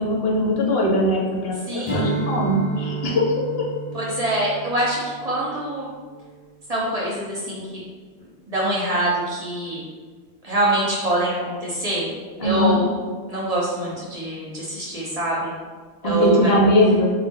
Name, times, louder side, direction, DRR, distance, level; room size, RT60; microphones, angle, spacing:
voice 1, 0.0-3.7 12.4-12.8 16.0-17.1, left 1 dB, 65° left, -2 dB, 0.9 m, -20 dB
voice 2, 1.7-2.2 3.9-5.9 6.7-7.8 8.5-9.8 10.4-12.1 12.4-12.9 13.3-15.5 16.0-16.5, right 1 dB, 40° right, -5 dB, 0.7 m, -24 dB
Strum, 1.8-6.5, right 4 dB, 20° left, 0.4 m, -31 dB
4.0 x 2.1 x 3.7 m, 1.5 s
omnidirectional pair, 1.1 m